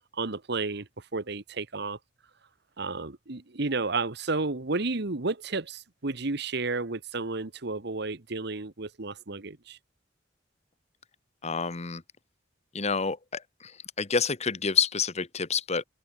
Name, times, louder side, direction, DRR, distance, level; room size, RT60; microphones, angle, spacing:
voice 1, 0.1-2.0 2.8-9.8, right 3 dB, 60° right, 1.4 m, -32 dB
voice 2, 11.4-12.0 12.7-13.7 14.0-15.8, left 5 dB, 35° left, 1.3 m, -28 dB
open air
head